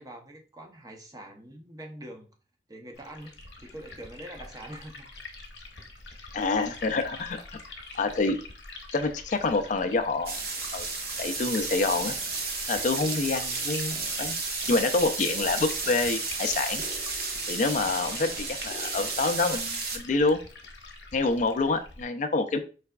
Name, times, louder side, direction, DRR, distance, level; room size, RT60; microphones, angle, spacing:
voice 1, 0.0-2.3 2.7-5.1 17.8-18.2, right 1 dB, 20° right, 0.6 m, -44 dB
Liquid, 2.9-22.0, left 3 dB, 65° left, 0.9 m, -46 dB
voice 2, 6.3-7.4 7.9-8.4 8.9-10.4 10.7-10.9 11.2-12.1 12.7-16.8 17.5-20.4 21.1-22.6, left 3 dB, 45° left, 0.4 m, -27 dB
sound 1, 10.3-20.0, right 4 dB, 60° right, 0.7 m, -32 dB
sound 2, 12.0-19.7, left 1 dB, 40° right, 1.0 m, -50 dB
4.7 x 3.3 x 2.2 m
head